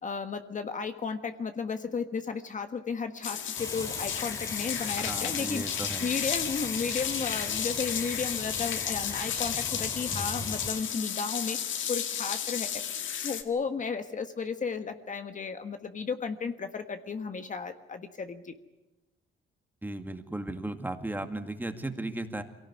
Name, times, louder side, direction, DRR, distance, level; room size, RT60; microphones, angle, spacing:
voice 1, 0.0-11.6 11.9-18.5, left 5 dB, 40° left, 7 dB, 1.5 m, -34 dB
sound 1, 3.2-13.4, left 9 dB, 75° left, 1.9 m, -33 dB
Rain, 3.6-10.8, left 1 dB, 15° left, 4.1 m, -40 dB
voice 2, 5.0-6.1 19.8-22.4, right 1 dB, 10° right, 6 dB, 2.1 m, -36 dB
23.5 x 18.0 x 9.7 m, 1.1 s
cardioid pair, 90°, 20 cm